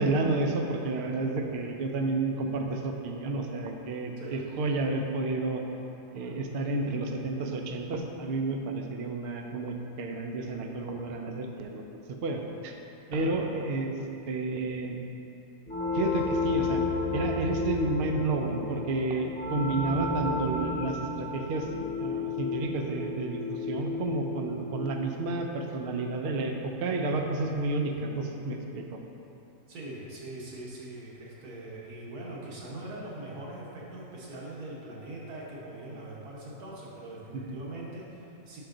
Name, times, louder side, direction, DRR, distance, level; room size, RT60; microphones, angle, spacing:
voice 1, 0.0-5.6 6.1-11.8 12.1-12.8 13.1-14.0 14.3-15.0 15.9-16.8 17.1-21.7 22.0-29.0 37.3-37.5, right 2 dB, 65° right, 3 dB, 0.6 m, -31 dB
sound 1, 15.7-26.1, left 3 dB, 40° left, 1.0 m, -32 dB
voice 2, 29.7-38.6, right 1 dB, 85° right, -5 dB, 1.6 m, -42 dB
6.2 x 4.7 x 3.8 m, 2.9 s
omnidirectional pair, 1.6 m